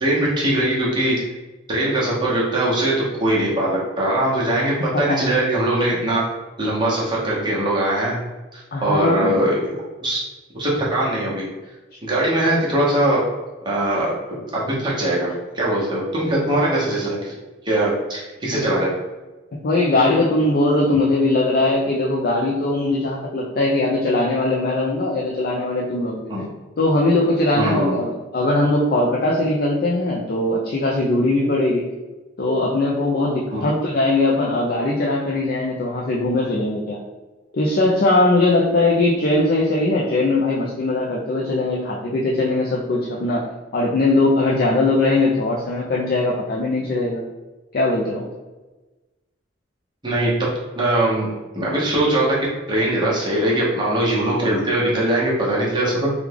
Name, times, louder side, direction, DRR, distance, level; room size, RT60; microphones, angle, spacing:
voice 1, 0.0-1.2 1.7-6.3 6.6-8.2 8.5-9.7 10.0-10.2 10.5-11.5 12.0-13.2 13.6-14.1 14.5-17.3 17.6-19.0 26.3-26.4 27.6-28.0 33.5-33.7 50.0-56.1, right 1 dB, 25° right, -6 dB, 1.0 m, -21 dB
voice 2, 8.7-9.4 19.6-26.3 26.8-31.9 32.4-37.0 37.5-47.2 47.7-48.2, left 2 dB, 50° left, -3 dB, 0.4 m, -20 dB
3.4 x 2.3 x 3.3 m, 1.2 s
head